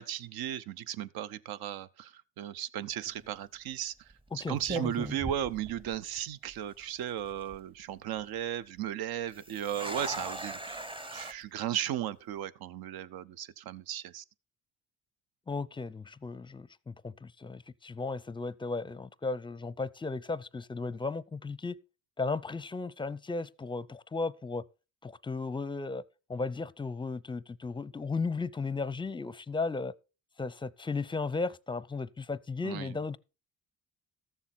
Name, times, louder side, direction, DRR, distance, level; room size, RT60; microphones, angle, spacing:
voice 1, 0.0-4.1 4.3-10.8 11.1-14.2 32.6-33.0, right 11 dB, 80° right, 0.7 m, -36 dB
sound 1, 3.1-3.4 4.1-4.3 4.6-6.2 6.5-6.6 7.2-7.6 9.3-11.3, right 2 dB, 15° right, 0.8 m, -39 dB
voice 2, 4.3-5.0 15.5-21.8 22.2-24.6 25.0-26.0 26.3-29.9 30.4-33.2, left 3 dB, 15° left, 0.5 m, -35 dB
13.5 x 7.2 x 4.1 m
cardioid pair, 85°, 36 cm